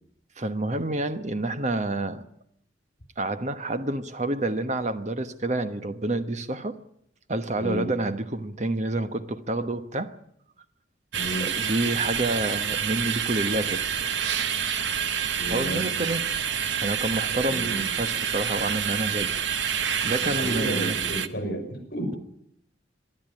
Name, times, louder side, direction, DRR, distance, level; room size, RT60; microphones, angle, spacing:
voice 1, 0.4-2.2 3.2-6.8 7.3-10.2 11.4-13.8 15.5-16.3 16.8-19.3 19.7-21.0, right 2 dB, 35° right, 1.1 m, -28 dB
voice 2, 7.5-7.9 11.1-11.5 15.3-15.8 17.4-17.8 20.2-22.2, right 1 dB, 45° left, 5.8 m, -32 dB
sound 1, 11.1-21.3, right 8 dB, 65° right, 0.9 m, -28 dB
25.0 x 11.0 x 10.0 m
head